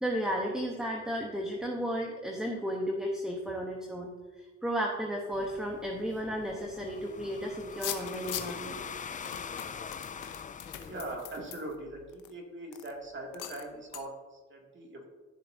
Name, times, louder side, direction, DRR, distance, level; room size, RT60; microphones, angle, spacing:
voice 1, 0.0-4.1 4.4-8.8, equal, ahead, 0 dB, 1.1 m, -33 dB
sound 1, 5.3-11.2, left 6 dB, 25° left, 0.4 m, -43 dB
sound 2, 7.7-8.7 9.2-12.3 12.7-12.9 13.3-13.7 13.9-14.0, left 11 dB, 80° left, 0.9 m, -41 dB
voice 2, 10.8-15.0, right 1 dB, 40° right, -1 dB, 2.6 m, -41 dB
14.0 x 7.4 x 2.8 m, 1.3 s
cardioid pair, 90°, 30 cm